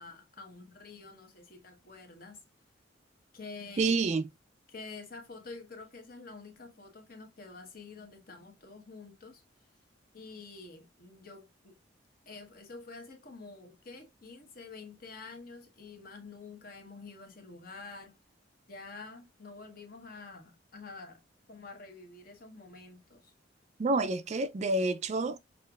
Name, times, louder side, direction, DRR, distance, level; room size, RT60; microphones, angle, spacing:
voice 1, 0.0-2.4 3.3-3.9 4.7-9.4 10.1-11.8 12.3-18.1 18.7-21.2 21.5-23.3, left 4 dB, 50° left, 1.0 m, -48 dB
voice 2, 3.8-4.3 23.8-25.4, right 3 dB, 35° right, 0.3 m, -28 dB
6.4 x 2.5 x 2.3 m
head